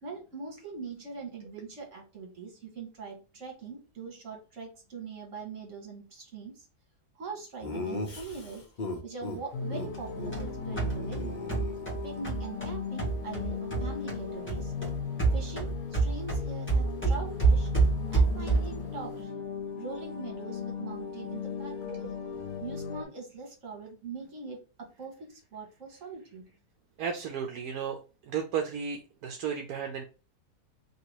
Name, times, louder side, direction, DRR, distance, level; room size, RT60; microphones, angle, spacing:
voice 1, 0.0-6.7 7.1-8.6 9.0-11.3 12.0-14.7 15.3-17.7 18.1-19.4 19.8-22.1 22.6-26.5, right 4 dB, 55° right, 1 dB, 1.7 m, -42 dB
Laughter, 7.6-9.4 9.7-9.9 10.2-10.3 10.6-12.2, left 2 dB, 40° left, 0.7 m, -37 dB
sound 1, 9.5-23.0, left 6 dB, 70° left, 1.1 m, -37 dB
sound 2, 9.9-14.2 14.5-18.9, right 4 dB, 10° left, 1.1 m, -28 dB
voice 2, 27.0-30.0, right 7 dB, 75° right, 3 dB, 1.1 m, -34 dB
3.0 x 2.8 x 4.5 m, 0.33 s
omnidirectional pair, 1.6 m